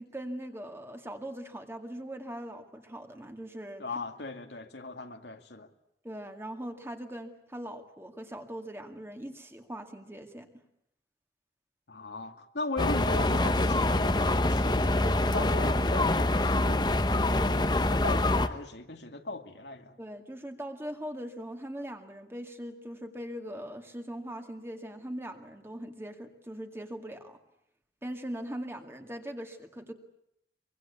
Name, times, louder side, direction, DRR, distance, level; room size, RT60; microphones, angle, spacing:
voice 1, 0.0-4.0 6.0-10.5 20.0-27.4 28.0-29.9, equal, 15° right, 5 dB, 2.2 m, -40 dB
voice 2, 3.8-5.7 11.9-14.9 15.3-20.0, left 3 dB, 80° left, 5 dB, 2.3 m, -38 dB
sound 1, 12.8-18.5, left 2 dB, 25° left, 1.1 m, -25 dB
24.5 x 24.0 x 8.4 m, 0.77 s
head